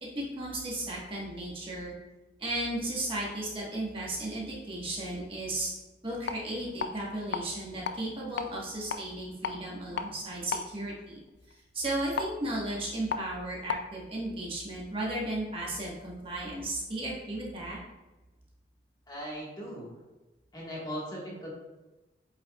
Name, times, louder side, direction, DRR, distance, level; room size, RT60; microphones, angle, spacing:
voice 1, 0.0-1.9 2.4-5.7 6.0-11.2 11.7-17.8, right 1 dB, 30° right, -5 dB, 1.4 m, -35 dB
sound 1, 6.1-13.9, left 5 dB, 70° left, 0.4 m, -38 dB
voice 2, 19.1-20.0 20.5-21.5, equal, 20° left, -4 dB, 1.6 m, -38 dB
8.0 x 5.6 x 2.4 m, 1.1 s
head